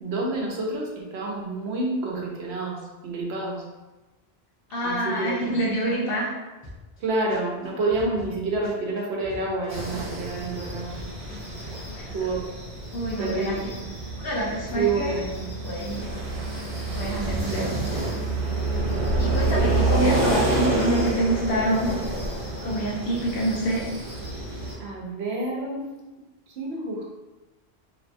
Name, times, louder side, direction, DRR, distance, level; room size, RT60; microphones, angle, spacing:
voice 1, 0.0-3.7 4.8-5.5 7.0-11.0 12.1-12.4 13.2-13.6 14.5-15.5 17.4-17.6 19.6-19.7 24.8-25.9 26.5-27.0, right 3 dB, 75° right, -1 dB, 0.9 m, -29 dB
voice 2, 4.7-6.3 11.9-12.1 12.9-13.6 14.2-15.1 15.6-16.1 16.9-17.7 19.2-21.9 22.6-23.9, right 1 dB, 65° left, -5 dB, 0.9 m, -26 dB
sound 1, 6.6-7.0 7.3-9.7 10.0-11.8, left 1 dB, 15° left, 0.7 m, -42 dB
sound 2, 9.7-24.7, right 2 dB, 55° right, 1.1 m, -28 dB
2.9 x 2.1 x 2.5 m, 1.1 s
omnidirectional pair, 1.1 m